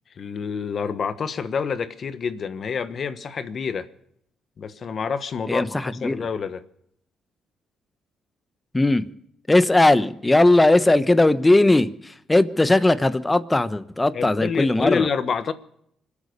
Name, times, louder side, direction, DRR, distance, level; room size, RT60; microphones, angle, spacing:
voice 1, 0.1-3.9 4.6-6.6 14.1-15.5, left 6 dB, 50° left, 1.3 m, -27 dB
voice 2, 5.5-6.2 8.7-9.0 9.5-15.1, left 2 dB, 15° left, 1.0 m, -18 dB
25.5 x 8.5 x 6.7 m
cardioid pair, 90°, 0 cm